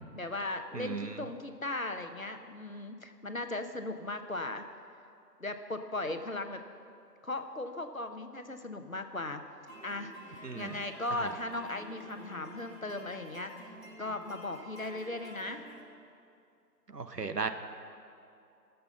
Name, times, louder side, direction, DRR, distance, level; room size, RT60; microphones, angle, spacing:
voice 1, 0.1-4.6 5.4-6.6 7.2-9.4 9.8-10.1 10.5-13.5 14.0-15.6, left 2 dB, 55° left, 7 dB, 0.8 m, -37 dB
voice 2, 0.7-1.1 10.4-10.7 16.9-17.5, right 5 dB, 75° right, 8 dB, 1.0 m, -35 dB
sound 1, 9.7-15.8, equal, 55° right, 2.8 m, -49 dB
16.5 x 6.8 x 6.7 m, 2.5 s
figure-of-eight pair, 180°, 50 cm